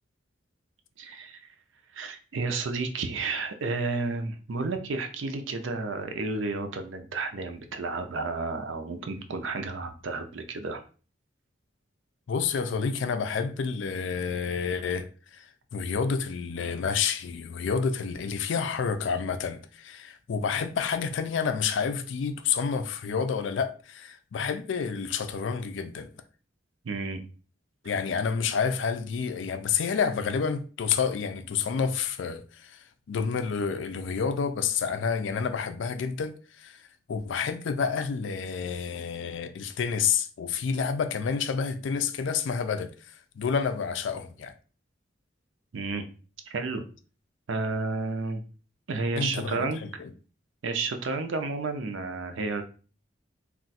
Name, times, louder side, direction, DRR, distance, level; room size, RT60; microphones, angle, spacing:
voice 1, 1.0-1.4 1.9-10.8 26.8-27.2 45.7-46.0 46.5-46.8 47.5-48.4 48.9-49.8 50.6-52.6, right 3 dB, 80° right, 0.5 m, -31 dB
voice 2, 12.3-26.1 27.8-36.8 37.1-44.5 49.2-50.1, left 6 dB, 75° left, 0.4 m, -29 dB
2.4 x 2.2 x 4.0 m
head